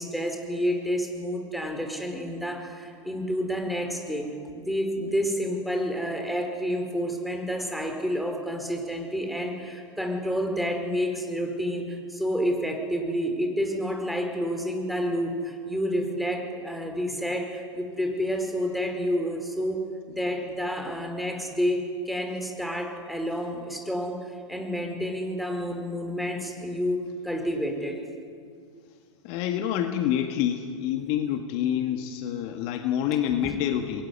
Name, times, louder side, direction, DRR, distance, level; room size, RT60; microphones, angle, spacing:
voice 1, 0.0-4.3 4.5-19.8 20.1-28.0 33.4-33.5, equal, ahead, 3 dB, 4.7 m, -29 dB
voice 2, 29.2-34.0, left 10 dB, 45° left, 6 dB, 1.8 m, -27 dB
27.0 x 21.5 x 9.7 m, 2.3 s
figure-of-eight pair, 95°, 15 cm